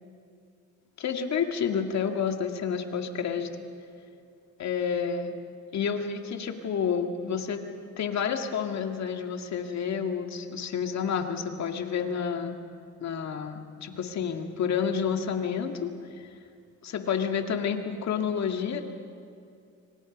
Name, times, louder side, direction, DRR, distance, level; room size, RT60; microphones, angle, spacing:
voice 1, 1.0-3.5 4.6-5.4 5.7-7.6 8.0-12.6 13.0-15.9 16.8-18.8, left 7 dB, 65° left, 5 dB, 2.2 m, -29 dB
26.5 x 25.0 x 5.3 m, 2.5 s
cardioid pair, 90°, 30 cm